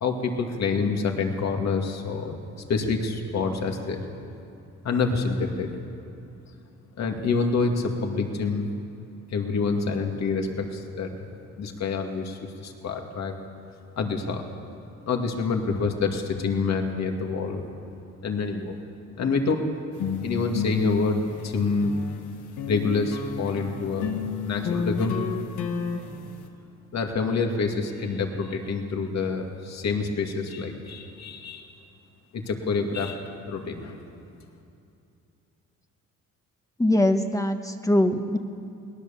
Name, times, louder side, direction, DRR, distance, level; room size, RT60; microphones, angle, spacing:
voice 1, 0.0-2.3 2.7-4.0 4.8-5.7 7.0-8.7 9.3-11.1 11.6-13.3 14.0-14.4 15.1-17.7 18.2-18.8 19.2-19.6 20.2-22.0 22.7-24.1 24.4-25.2 26.9-31.7 32.3-34.0, left 4 dB, 60° left, 3 dB, 2.4 m, -27 dB
sound 1, 19.9-22.2 22.6-26.5, left 6 dB, 85° left, 1.7 m, -31 dB
voice 2, 36.8-38.4, left 1 dB, 10° left, 6 dB, 1.2 m, -22 dB
21.0 x 19.0 x 7.2 m, 2.7 s
cardioid pair, 90°, 30 cm